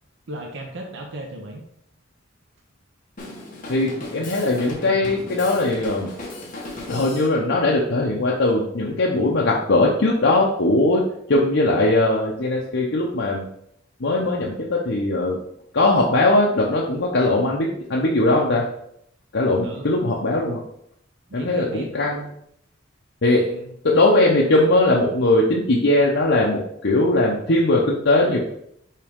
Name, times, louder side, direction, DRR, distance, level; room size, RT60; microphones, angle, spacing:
voice 1, 0.3-1.6 19.6-19.9 21.3-21.9 23.4-23.7, right 1 dB, 65° right, 2 dB, 0.8 m, -35 dB
Drum kit, 3.2-7.3, left 2 dB, 45° left, 1.4 m, -36 dB
voice 2, 3.7-6.1 6.9-11.0 11.3-13.5 14.0-15.4 15.7-18.7 19.3-20.6 21.3-22.2 23.2-23.4 23.8-28.4, left 2 dB, 65° left, -3 dB, 0.8 m, -20 dB
5.6 x 4.8 x 3.6 m, 0.72 s
head